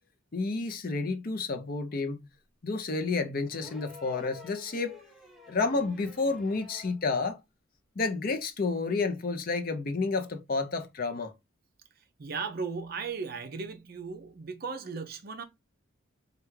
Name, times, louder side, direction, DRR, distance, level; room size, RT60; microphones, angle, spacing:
voice 1, 0.3-2.2 2.6-5.0 5.5-7.4 8.0-11.3, left 3 dB, 45° left, 0.6 m, -30 dB
sound 1, 3.5-7.1 8.4-8.5, left 3 dB, ahead, 0.5 m, -50 dB
voice 2, 12.2-15.4, right 5 dB, 45° right, 0.5 m, -36 dB
3.4 x 2.3 x 3.0 m
head